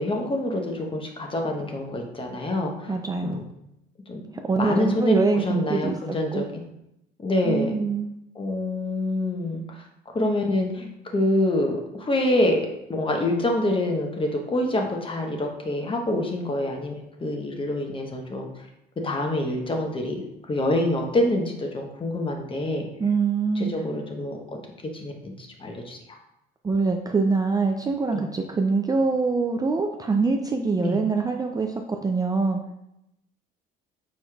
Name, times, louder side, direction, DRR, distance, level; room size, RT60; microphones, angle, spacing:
voice 1, 0.0-2.9 3.2-3.4 4.1-4.2 4.6-6.6 7.2-7.8 8.3-9.8 10.1-12.6 12.9-18.5 19.0-20.2 20.5-22.9 23.6-24.6 24.9-26.0 28.1-28.3 30.8-31.0, left 1 dB, 25° left, 2 dB, 0.9 m, -26 dB
voice 2, 2.9-3.4 4.5-6.0 6.3-6.4 7.4-8.1 23.0-23.7 26.6-32.6, right 4 dB, 20° right, 3 dB, 0.4 m, -24 dB
4.8 x 4.2 x 2.3 m, 0.83 s
supercardioid pair, 85°, 20 cm